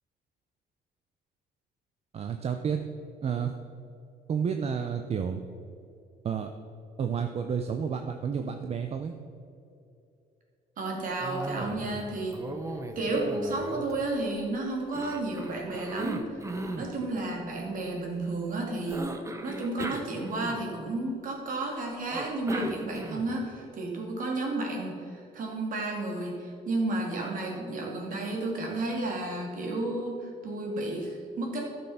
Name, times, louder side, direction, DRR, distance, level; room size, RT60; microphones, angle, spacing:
voice 1, 2.1-2.8 3.2-3.5 4.3-5.4 6.2-6.5 7.0-9.1, right 7 dB, 35° right, 6 dB, 0.7 m, -30 dB
voice 2, 10.8-12.5 13.0-16.3 16.8-19.1 19.4-31.6, right 2 dB, 55° right, -1 dB, 2.7 m, -32 dB
Cough, 11.2-12.1 12.3-14.4 14.9-16.9 18.9-20.9 22.1-23.4, right 2 dB, 15° right, 1.0 m, -37 dB
12.0 x 7.0 x 5.7 m, 2.6 s
cardioid pair, 110°, 17 cm